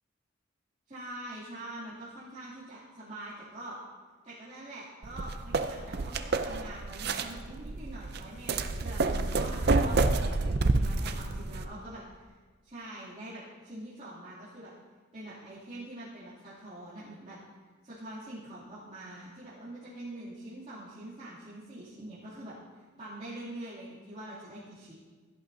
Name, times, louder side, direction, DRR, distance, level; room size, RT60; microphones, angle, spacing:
voice 1, 0.9-3.8 4.2-12.0 12.6-14.7 15.1-17.4 17.8-24.9, right 1 dB, 35° right, -12 dB, 2.8 m, -44 dB
sound 1, 5.0-11.6, right 3 dB, 55° right, 0.6 m, -29 dB
16.5 x 11.0 x 2.8 m, 1.4 s
head